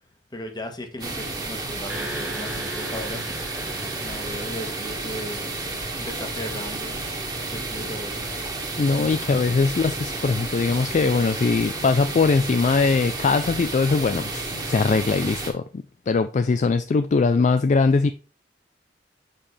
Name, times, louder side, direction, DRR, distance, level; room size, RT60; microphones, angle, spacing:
voice 1, 0.3-3.7 4.0-5.5 5.9-7.0 7.5-8.3, left 1 dB, 25° left, 1.2 m, -37 dB
sound 1, 1.0-15.5, right 2 dB, 25° right, 1.5 m, -31 dB
sound 2, 1.9-6.4, equal, 5° right, 1.4 m, -39 dB
voice 2, 8.8-18.1, left 4 dB, 45° left, 0.4 m, -21 dB
6.7 x 5.4 x 3.4 m
head